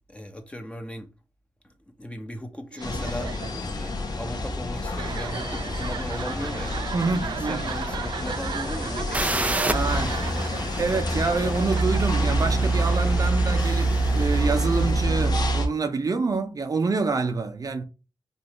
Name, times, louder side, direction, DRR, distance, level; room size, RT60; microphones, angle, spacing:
voice 1, 0.1-1.1 1.6-1.7 2.0-6.9 7.2-10.5, left 1 dB, 15° left, 1.0 m, -37 dB
sound 1, 2.7-14.4, right 8 dB, 75° right, 0.3 m, -37 dB
sound 2, 2.8-15.7, right 1 dB, 60° left, 1.3 m, -26 dB
voice 2, 6.9-7.6 9.7-10.2 10.8-17.8, right 4 dB, 50° right, 0.8 m, -27 dB
sound 3, 9.1-14.8, right 2 dB, 20° right, 0.5 m, -33 dB
5.4 x 2.7 x 3.1 m
cardioid pair, 70°, 8 cm